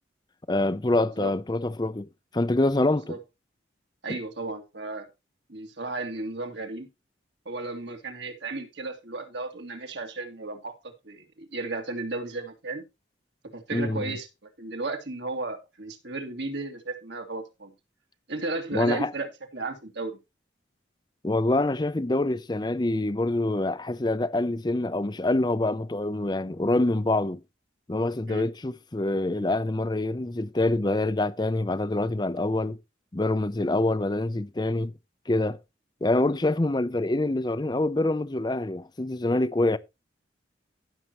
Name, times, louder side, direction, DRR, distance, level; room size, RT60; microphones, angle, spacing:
voice 1, 0.5-2.1 2.3-3.2 4.1-4.2 13.7-14.1 18.7-19.1 21.2-27.4 27.9-32.8 33.1-34.9 35.3-35.6 36.0-39.8, left 2 dB, 25° left, 0.5 m, -25 dB
voice 2, 4.0-5.1 5.5-6.9 7.5-12.8 13.5-17.7 18.3-20.2 28.3-28.5 33.8-33.9, right 3 dB, 65° right, 2.5 m, -34 dB
15.5 x 6.6 x 3.0 m
head